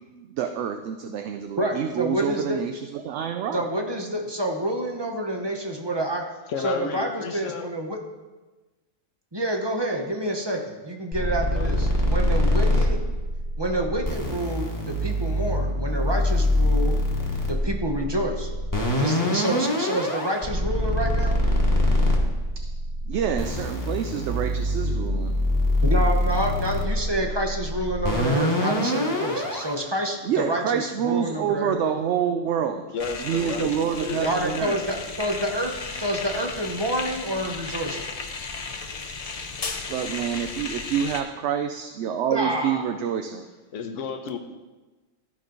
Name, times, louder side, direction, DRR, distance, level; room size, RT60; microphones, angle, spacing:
voice 1, 0.1-3.6 23.1-25.3 30.2-32.8 33.2-34.8 39.9-43.5, right 8 dB, 70° right, 6 dB, 0.8 m, -27 dB
voice 2, 1.6-2.6 3.5-6.3 6.6-8.0 9.3-13.0 13.6-17.0 17.5-18.5 19.0-21.4 25.8-31.8 34.2-38.0 42.3-42.8, right 1 dB, 25° right, 2 dB, 0.8 m, -28 dB
voice 3, 6.5-7.7 11.5-12.0 32.8-34.7 43.7-44.4, left 6 dB, 80° left, 6 dB, 1.1 m, -33 dB
sound 1, 11.1-29.7, left 1 dB, 15° left, 1.2 m, -24 dB
sound 2, 33.0-41.2, left 4 dB, 40° left, 0.6 m, -35 dB
13.5 x 5.3 x 3.9 m, 1.2 s
omnidirectional pair, 1.3 m